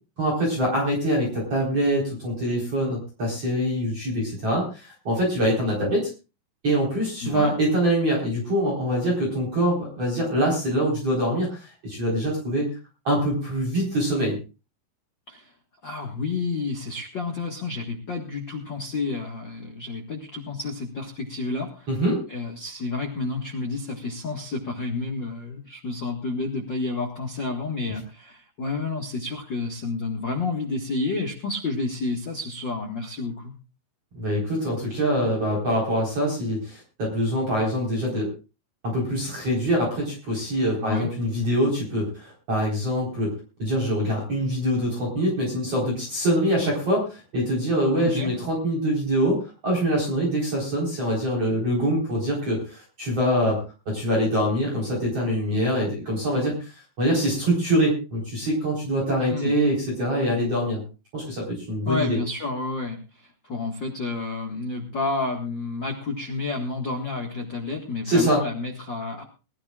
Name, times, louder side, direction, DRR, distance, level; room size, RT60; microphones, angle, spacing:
voice 1, 0.2-6.1 6.6-12.7 13.0-14.4 21.9-22.2 34.1-38.3 38.8-43.3 43.6-60.8 61.1-62.2 68.0-68.4, equal, 35° right, -2 dB, 4.9 m, -24 dB
voice 2, 7.2-7.5 15.3-15.5 15.8-21.9 22.3-33.5 40.8-41.1 48.0-48.3 59.3-59.5 61.9-69.2, left 3 dB, 65° left, 1 dB, 1.1 m, -30 dB
22.0 x 13.5 x 2.4 m, 0.32 s
omnidirectional pair, 4.9 m